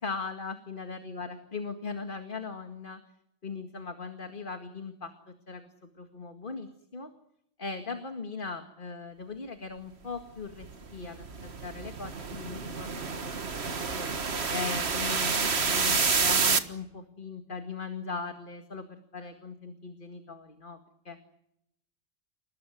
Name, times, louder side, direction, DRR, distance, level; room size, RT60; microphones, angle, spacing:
voice 1, 0.0-3.0 3.4-5.7 6.0-7.1 7.6-14.1 14.5-20.8 21.1-21.2, left 4 dB, 45° left, 7 dB, 2.1 m, -39 dB
sound 1, 10.6-16.6, right 5 dB, 60° right, 1.8 m, -28 dB
29.5 x 18.5 x 9.3 m, 0.81 s
omnidirectional pair, 1.2 m